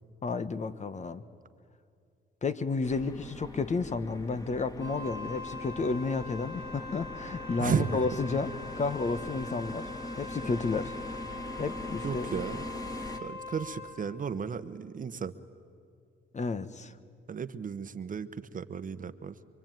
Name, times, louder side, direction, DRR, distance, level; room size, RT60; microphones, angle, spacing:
voice 1, 0.2-1.2 2.4-9.9 10.2-10.9 11.6-12.3 16.3-16.9, left 4 dB, 35° left, 12 dB, 1.2 m, -32 dB
sound 1, 2.8-13.2, left 1 dB, 20° left, 2.2 m, -42 dB
Wind instrument woodwind instrument, 4.8-14.1, left 3 dB, 65° left, 7.2 m, -42 dB
voice 2, 7.6-8.0 12.0-12.7 13.2-15.3 17.3-19.4, right 6 dB, 40° right, 12 dB, 1.1 m, -34 dB
26.0 x 23.5 x 9.2 m, 2.4 s
cardioid pair, 90°, 20 cm